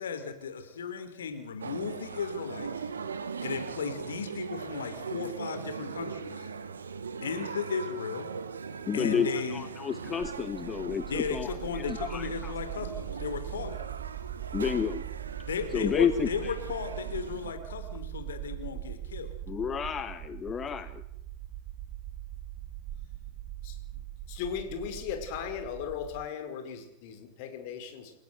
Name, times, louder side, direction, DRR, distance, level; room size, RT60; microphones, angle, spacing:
voice 1, 0.0-2.9 3.4-6.5 7.2-8.3 8.9-9.7 11.1-13.8 15.5-19.3, left 6 dB, 65° left, 8 dB, 3.7 m, -35 dB
sound 1, 1.6-17.5, right 5 dB, 70° right, 1.8 m, -40 dB
voice 2, 8.9-12.5 14.5-15.0 15.7-16.5 19.5-21.0, left 7 dB, 20° left, 12 dB, 1.2 m, -31 dB
sound 2, 10.2-26.3, right 13 dB, 40° right, 1.3 m, -41 dB
voice 3, 23.6-24.0 24.3-28.1, left 8 dB, 45° left, 6 dB, 5.4 m, -37 dB
29.5 x 16.5 x 8.1 m, 0.79 s
figure-of-eight pair, 90°, 0 cm